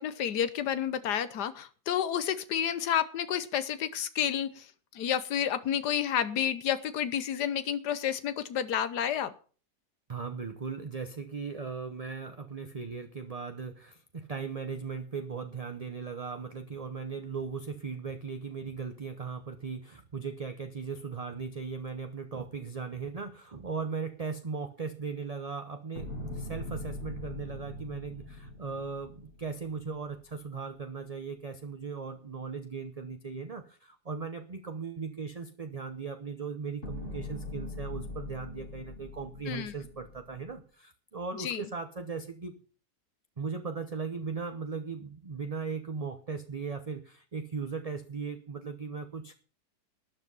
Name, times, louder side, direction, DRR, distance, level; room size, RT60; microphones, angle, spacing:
voice 1, 0.0-4.7 4.9-9.3 39.5-39.7 41.4-41.6, left 9 dB, 85° left, 13 dB, 1.5 m, -30 dB
voice 2, 10.1-42.6 43.4-49.3, right 5 dB, 30° right, 8 dB, 0.7 m, -38 dB
sound 1, 26.0-30.2 36.8-40.6, left 1 dB, 50° left, 5.7 m, -41 dB
13.0 x 10.0 x 5.4 m, 0.40 s
omnidirectional pair, 1.7 m